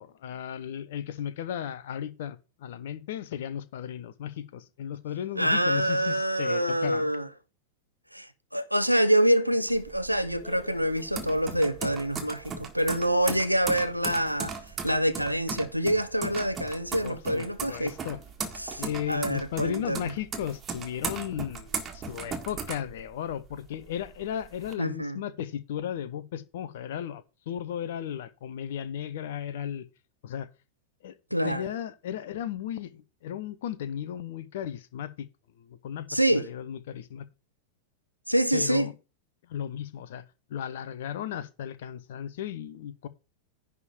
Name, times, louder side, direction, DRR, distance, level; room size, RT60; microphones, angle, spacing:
voice 1, 0.0-7.1 17.0-18.2 18.8-29.9 30.2-30.5 31.0-31.2 31.4-35.3 35.6-37.2 38.5-38.9 39.5-40.2 40.5-43.1, left 10 dB, 55° left, 0.7 m, -35 dB
voice 2, 5.4-7.3 8.1-14.5 14.8-17.9 18.6-20.1 24.8-25.2 31.3-31.6 36.1-36.5 38.3-38.9, right 1 dB, 90° right, 0.7 m, -26 dB
sound 1, 9.7-23.5 23.9-24.7, right 5 dB, 20° right, 1.6 m, -37 dB
10.5 x 3.6 x 6.9 m
figure-of-eight pair, 90°, 0 cm